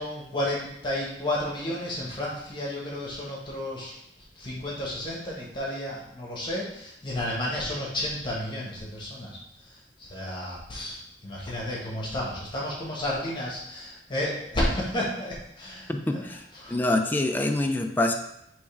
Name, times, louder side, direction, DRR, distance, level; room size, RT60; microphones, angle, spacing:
voice 1, 0.0-4.0 4.4-9.4 10.1-16.2 16.5-16.7, left 1 dB, 30° left, -4 dB, 1.1 m, -32 dB
voice 2, 15.9-16.4 16.7-18.1, left 2 dB, 10° left, 4 dB, 0.3 m, -25 dB
3.6 x 3.1 x 4.6 m, 0.79 s
head